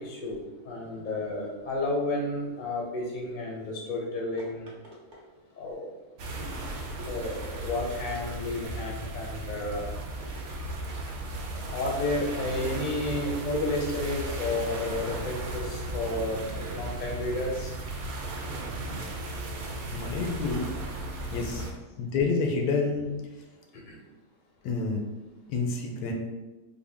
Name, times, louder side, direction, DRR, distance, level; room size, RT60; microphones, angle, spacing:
voice 1, 0.0-4.7 5.6-5.9 7.1-9.9 11.5-17.7 23.9-24.0, left 2 dB, 45° left, -2 dB, 0.7 m, -32 dB
sound 1, 4.4-5.8 7.0-7.6 8.1-8.8 10.2-11.1 12.5-14.2 15.5-16.8, right 1 dB, 40° right, 0.8 m, -49 dB
sound 2, 6.2-21.7, right 2 dB, 80° right, 1.1 m, -36 dB
voice 2, 19.9-20.7 21.3-21.7 22.0-23.1 24.6-25.0 25.5-26.1, left 4 dB, 90° left, 2 dB, 1.1 m, -28 dB
3.5 x 2.1 x 3.4 m, 1.1 s
omnidirectional pair, 1.5 m